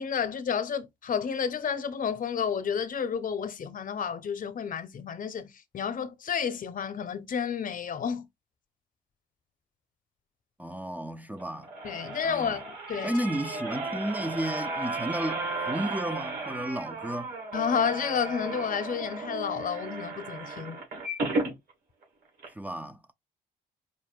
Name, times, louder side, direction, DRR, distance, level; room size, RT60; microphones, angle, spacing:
voice 1, 0.0-5.5 5.7-8.3 11.8-13.1 17.5-20.8, left 7 dB, 50° left, 0.9 m, -31 dB
voice 2, 10.6-11.7 12.2-12.6 13.0-17.3 22.5-23.1, right 1 dB, 10° right, 0.5 m, -33 dB
sound 1, 11.4-21.5 22.0-22.1 22.4-22.5, right 2 dB, 70° right, 2.9 m, -34 dB
5.3 x 2.1 x 3.7 m
supercardioid pair, 60°, 17 cm